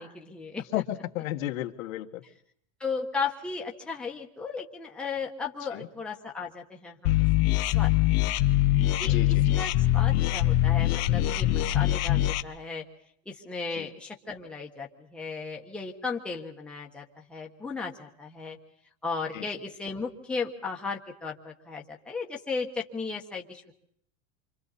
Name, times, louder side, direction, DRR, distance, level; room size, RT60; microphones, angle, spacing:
voice 1, 0.0-0.8 2.8-7.1 7.5-7.9 9.0-9.2 9.6-12.8 13.3-18.6 19.0-23.8, left 4 dB, 5° left, -2 dB, 1.3 m, -35 dB
voice 2, 0.7-2.2 5.7-5.9 9.0-9.4 13.8-13.9 19.3-19.5, left 14 dB, 85° left, 4 dB, 1.9 m, -33 dB
sound 1, 7.0-12.4, left 15 dB, 40° left, 0.8 m, -23 dB
28.5 x 25.5 x 4.2 m, 0.66 s
supercardioid pair, 175°, 39 cm